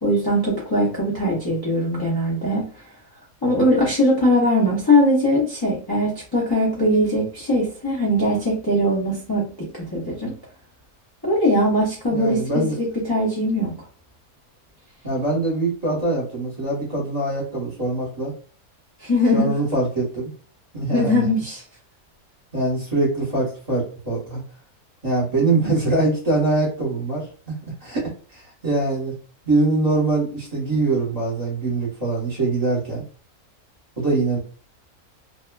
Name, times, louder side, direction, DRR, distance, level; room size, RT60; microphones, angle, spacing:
voice 1, 0.0-2.7 3.4-10.3 11.2-13.7 19.0-19.5 20.9-21.6 25.6-25.7, left 1 dB, 35° left, -7 dB, 0.3 m, -21 dB
voice 2, 12.1-12.8 15.0-18.3 19.3-20.3 20.7-21.3 22.5-24.4 25.0-27.6 27.8-29.2 29.4-33.0 34.0-34.4, right 2 dB, 30° right, -5 dB, 1.0 m, -23 dB
2.7 x 2.2 x 2.2 m, 0.42 s
omnidirectional pair, 1.5 m